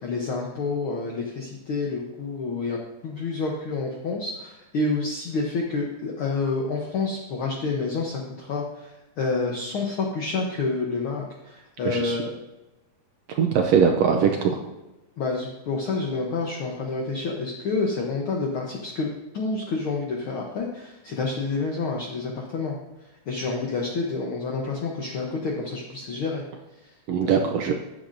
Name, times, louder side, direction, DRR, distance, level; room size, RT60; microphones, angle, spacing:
voice 1, 0.0-12.3 15.2-22.8 23.3-26.4 26.8-26.9 27.2-27.4, left 3 dB, 60° left, -1 dB, 1.5 m, -28 dB
voice 2, 11.8-12.2 13.3-14.6 27.1-27.7, right 7 dB, 75° right, 3 dB, 1.6 m, -21 dB
12.5 x 9.6 x 2.7 m, 1.0 s
omnidirectional pair, 3.5 m